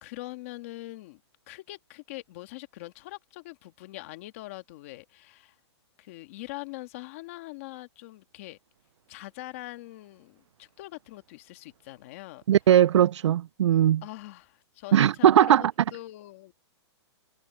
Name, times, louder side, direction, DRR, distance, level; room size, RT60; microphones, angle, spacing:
voice 1, 0.0-1.2 1.5-5.6 6.0-8.6 9.1-12.4 14.0-16.5, left 18 dB, 30° left, 1.7 m, -43 dB
voice 2, 12.5-14.0 14.9-15.6, right 10 dB, 85° right, 0.4 m, -19 dB
hypercardioid pair, 175°, 15 cm